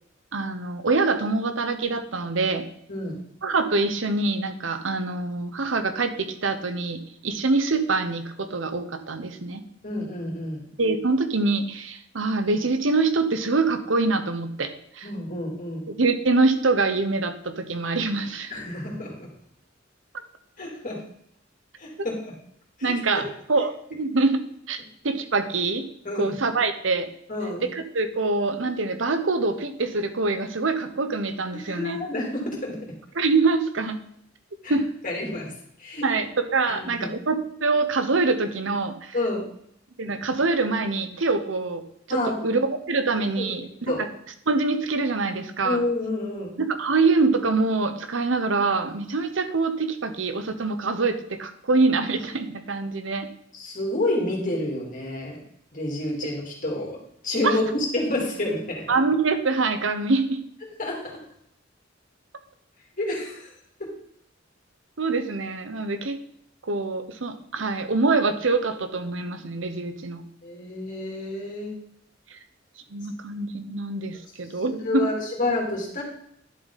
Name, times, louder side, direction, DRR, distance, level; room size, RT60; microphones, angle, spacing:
voice 1, 0.3-2.6 3.4-9.6 10.8-15.1 15.9-18.5 22.8-24.4 24.7-25.8 26.2-27.1 27.6-32.0 33.1-34.0 34.7-34.8 36.0-39.2 40.0-41.8 42.1-43.9 44.5-45.8 46.6-53.3 57.4-57.6 58.9-60.4 65.0-66.2 66.7-70.2 72.3-72.4 72.9-75.0, right 3 dB, 80° right, 9 dB, 0.9 m, -25 dB
voice 2, 9.8-10.6 15.0-15.9 18.5-19.3 20.6-21.0 21.8-22.3 22.8-23.2 26.0-26.4 27.3-27.7 31.5-32.8 34.6-34.7 35.0-35.5 35.8-36.0 36.7-37.1 39.1-39.4 42.1-42.4 43.4-43.5 43.9-44.0 45.6-46.5 53.5-55.4 55.7-57.0 57.2-58.9 60.8-61.2 63.0-63.5 63.8-63.9 70.4-71.7 74.5-76.0, left 2 dB, 45° left, -2 dB, 3.1 m, -29 dB
11.0 x 7.4 x 4.2 m, 0.70 s
head